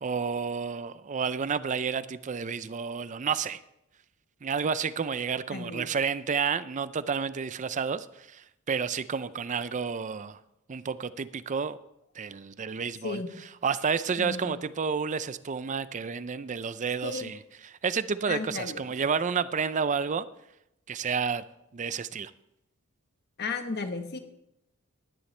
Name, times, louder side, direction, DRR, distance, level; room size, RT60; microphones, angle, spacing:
voice 1, 0.0-3.6 4.4-10.4 10.7-11.8 12.2-13.2 13.6-20.3 20.9-21.4 21.7-22.3, right 6 dB, 35° right, 15 dB, 0.5 m, -30 dB
voice 2, 5.5-5.9 13.0-13.3 14.2-14.6 17.0-17.3 18.3-18.8 23.4-24.2, left 4 dB, 50° left, 6 dB, 1.3 m, -34 dB
16.5 x 11.0 x 3.3 m, 0.84 s
head